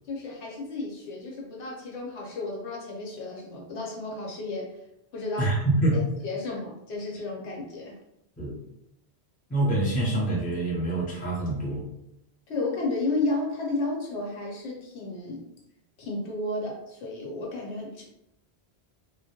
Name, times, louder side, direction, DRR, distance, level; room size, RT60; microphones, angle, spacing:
voice 1, 0.1-4.7 5.1-5.5 5.9-7.9 12.5-15.4 16.0-18.0, left 2 dB, 90° left, -2 dB, 1.0 m, -32 dB
voice 2, 5.4-6.0 8.4-8.5 9.5-11.8, right 2 dB, 10° left, -4 dB, 0.4 m, -25 dB
2.1 x 2.1 x 2.8 m, 0.81 s
omnidirectional pair, 1.1 m